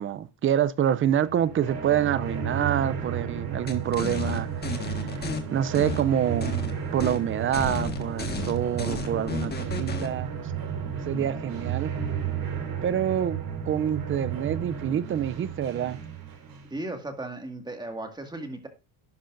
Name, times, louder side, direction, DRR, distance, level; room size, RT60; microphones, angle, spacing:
voice 1, 0.0-5.3 5.5-10.3 10.8-11.9 12.8-13.4 13.7-16.0, right 10 dB, 30° right, 0.5 m, -27 dB
sound 1, 1.0-16.8, right 7 dB, 50° right, 3.0 m, -33 dB
sound 2, 3.7-5.4 5.7-6.7 7.0-7.2 7.5-10.1, left 5 dB, 20° left, 1.6 m, -33 dB
voice 2, 16.7-18.7, right 2 dB, 10° right, 2.0 m, -36 dB
11.5 x 10.0 x 2.6 m
supercardioid pair, 120°, 45 cm